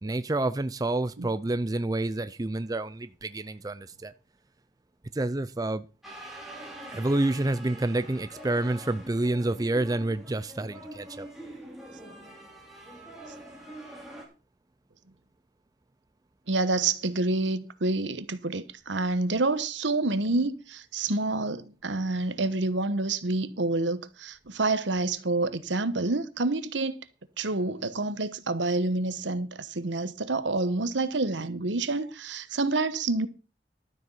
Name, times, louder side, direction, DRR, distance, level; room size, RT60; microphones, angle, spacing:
voice 1, 0.0-4.1 5.1-5.9 6.9-11.3, right 2 dB, 20° right, 0.5 m, -28 dB
sound 1, 6.0-14.3, right 1 dB, ahead, 3.7 m, -45 dB
voice 2, 16.5-27.0 27.4-33.3, right 2 dB, 80° right, 1.1 m, -28 dB
12.5 x 7.7 x 5.6 m
head